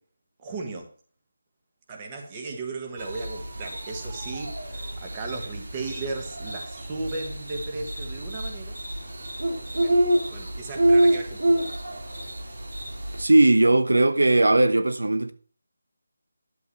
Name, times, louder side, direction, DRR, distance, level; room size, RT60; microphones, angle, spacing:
voice 1, 0.4-0.9 1.9-8.8 9.8-11.7, right 3 dB, 20° right, 1.5 m, -36 dB
sound 1, 3.0-13.2, right 1 dB, 70° right, 3.1 m, -27 dB
voice 2, 13.2-15.3, right 2 dB, 90° right, 1.0 m, -18 dB
10.5 x 8.1 x 3.2 m
figure-of-eight pair, 170°, 0 cm